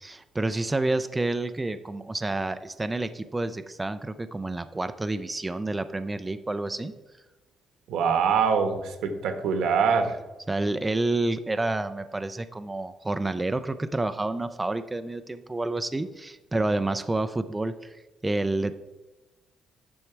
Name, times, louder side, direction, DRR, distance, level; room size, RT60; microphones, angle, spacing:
voice 1, 0.0-6.9 10.5-18.0 18.2-18.8, right 2 dB, 15° right, 9 dB, 0.4 m, -29 dB
voice 2, 7.9-10.2, right 6 dB, 85° right, 7 dB, 1.2 m, -24 dB
9.8 x 6.3 x 4.5 m, 1.1 s
cardioid pair, 90°, 0 cm